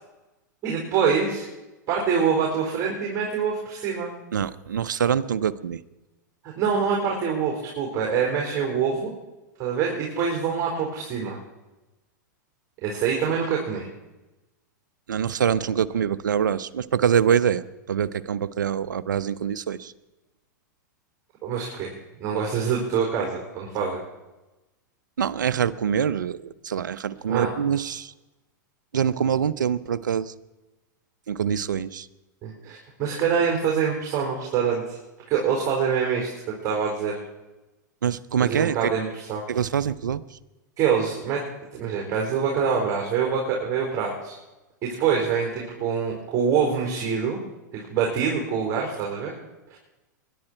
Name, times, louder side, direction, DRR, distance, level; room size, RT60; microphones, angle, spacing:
voice 1, 0.6-1.4 1.9-4.1 6.4-9.1 9.6-11.4 12.8-13.9 21.4-21.9 22.2-24.0 27.3-27.5 32.4-35.0 35.3-37.2 38.4-39.4 40.8-41.4 41.7-44.3 44.8-47.4 47.7-49.3 49.7-49.8, right 6 dB, 35° right, -1 dB, 4.5 m, -25 dB
voice 2, 4.3-5.8 15.1-19.9 25.2-28.1 28.9-30.3 31.3-32.1 38.0-38.9 39.5-40.4, right 8 dB, 85° right, 14 dB, 0.7 m, -25 dB
22.0 x 11.0 x 4.5 m, 1.1 s
hypercardioid pair, 110°, 10 cm